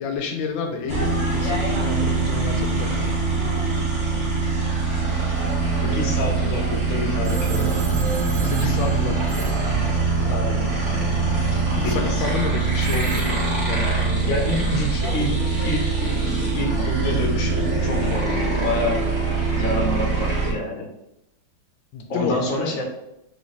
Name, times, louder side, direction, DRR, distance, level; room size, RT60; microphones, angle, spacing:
voice 1, 0.0-3.1 8.4-9.5 11.8-13.3 13.6-14.6 14.9-15.4 21.9-22.7, left 5 dB, 85° left, 3 dB, 1.3 m, -30 dB
sound 1, 0.8-16.6 16.8-17.7, right 5 dB, 50° right, 0.4 m, -36 dB
sound 2, 0.9-20.5, right 3 dB, 15° right, 0.8 m, -23 dB
voice 2, 5.8-7.8 10.3-10.7 11.8-12.2 14.2-15.3 15.6-20.9 22.1-22.8, left 1 dB, 55° left, -1 dB, 1.1 m, -28 dB
Telephone, 7.2-10.5 12.8-14.3, right 6 dB, 75° right, 0.9 m, -39 dB
3.4 x 3.0 x 4.0 m, 0.85 s
omnidirectional pair, 2.1 m